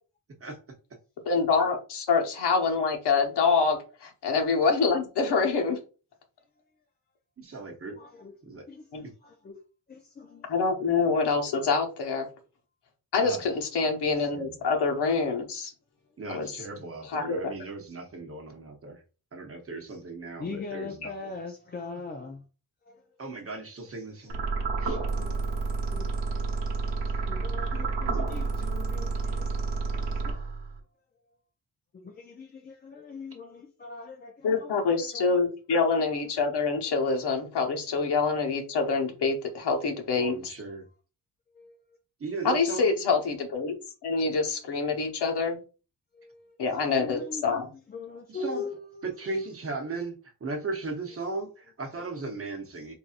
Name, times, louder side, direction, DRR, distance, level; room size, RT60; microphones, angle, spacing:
voice 1, 1.3-5.8 8.9-9.0 10.5-12.3 13.1-15.7 16.3-16.5 17.1-17.5 34.4-40.5 42.4-43.7 44.0-45.6 46.6-47.7, left 4 dB, 65° left, 1.0 m, -26 dB
voice 2, 7.4-8.0 8.4-8.6 13.2-13.4 14.3-14.6 16.2-19.0 19.3-21.3 23.2-24.4 24.8-25.0 40.2-40.9 42.2-43.0 48.3-48.6 49.0-52.9, right 3 dB, 30° right, 0.8 m, -37 dB
voice 3, 8.0-8.3 8.7-9.6 9.9-10.5 20.4-22.4 22.9-23.0 25.2-25.6 25.9-26.5 27.3-29.5 29.9-30.4 31.9-35.4 35.7-36.3 38.1-38.2 40.1-40.3 41.5-41.8 46.1-46.6 47.0-49.4, left 4 dB, 25° left, 0.3 m, -41 dB
sound 1, 24.3-30.8, right 3 dB, 75° right, 1.0 m, -30 dB
4.6 x 2.6 x 2.4 m
wide cardioid pair, 155°, 43 cm